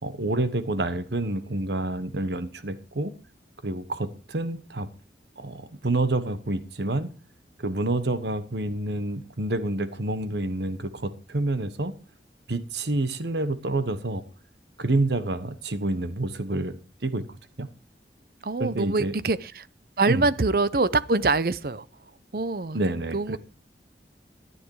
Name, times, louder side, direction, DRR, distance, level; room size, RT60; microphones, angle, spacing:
voice 1, 0.0-3.1 3.6-4.9 5.4-7.1 7.6-11.9 12.5-14.2 14.8-17.7 18.6-19.1 20.1-20.3 22.7-23.4, right 2 dB, 75° right, 1.2 m, -28 dB
voice 2, 18.4-19.7 20.0-21.8 22.3-22.8 23.1-23.4, right 3 dB, 55° right, 0.7 m, -24 dB
13.5 x 9.6 x 4.8 m
head